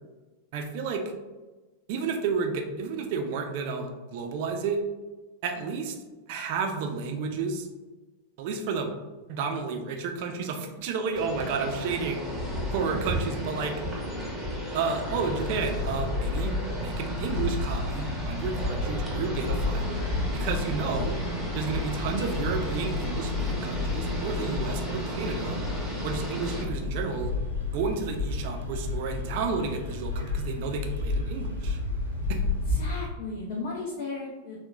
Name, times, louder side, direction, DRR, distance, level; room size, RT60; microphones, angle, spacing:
voice 1, 0.5-1.0 1.9-4.8 5.4-6.0 6.3-7.7 8.4-8.9 9.3-12.2 12.7-13.8 14.7-20.0 20.3-21.2 21.5-25.6 26.0-27.3 27.7-31.8 32.3-32.4, right 5 dB, 50° right, 4 dB, 0.4 m, -31 dB
sound 1, 11.2-26.6, equal, ahead, 0.8 m, -34 dB
sound 2, 15.1-33.0, left 3 dB, 90° left, 0.7 m, -32 dB
voice 2, 32.7-34.6, left 3 dB, 55° left, -2 dB, 0.4 m, -36 dB
3.6 x 2.1 x 2.2 m, 1.2 s
figure-of-eight pair, 90°, 0 cm